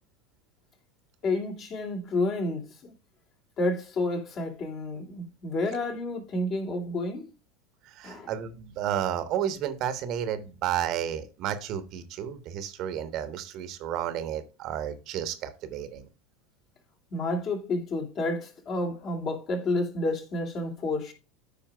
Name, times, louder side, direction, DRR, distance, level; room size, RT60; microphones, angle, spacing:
voice 1, 1.2-2.9 3.6-7.3 8.0-8.3 17.1-21.1, left 2 dB, 40° left, 2.5 m, -30 dB
voice 2, 7.8-16.1, right 10 dB, 45° right, 1.2 m, -32 dB
13.5 x 5.2 x 2.3 m
figure-of-eight pair, 80°, 0 cm